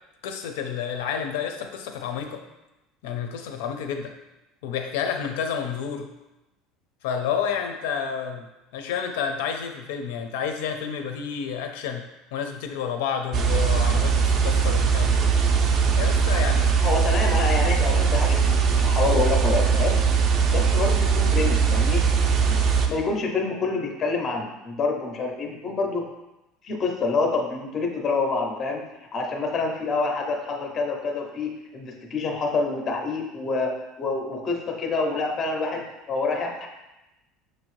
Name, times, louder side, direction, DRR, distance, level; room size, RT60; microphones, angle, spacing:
voice 1, 0.2-2.4 3.0-4.1 4.6-6.1 7.0-8.5 8.7-12.0 12.3-15.3 15.9-16.7, left 7 dB, 85° left, 5 dB, 0.5 m, -30 dB
sound 1, 13.3-22.9, right 6 dB, 30° right, 0.4 m, -20 dB
voice 2, 16.8-20.0 20.5-22.0 22.9-26.0 26.6-28.8 29.1-36.7, left 3 dB, 25° left, 1 dB, 0.5 m, -27 dB
6.1 x 2.7 x 3.1 m, 0.99 s
cardioid pair, 175°, 0 cm